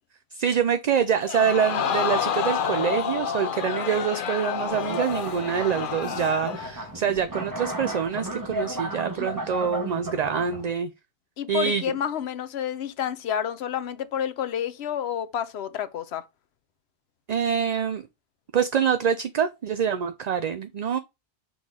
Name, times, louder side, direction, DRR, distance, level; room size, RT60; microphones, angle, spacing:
voice 1, 0.3-10.9 11.5-11.8 17.3-18.0 18.5-21.0, right 7 dB, 50° right, 0.5 m, -25 dB
Crowd, 1.3-6.7 7.2-7.3, left 7 dB, 60° left, 0.8 m, -29 dB
sound 1, 4.7-10.7, right 1 dB, 20° right, 1.1 m, -34 dB
voice 2, 11.4-16.3, left 9 dB, 90° left, 0.9 m, -29 dB
6.2 x 3.9 x 4.8 m
omnidirectional pair, 1.1 m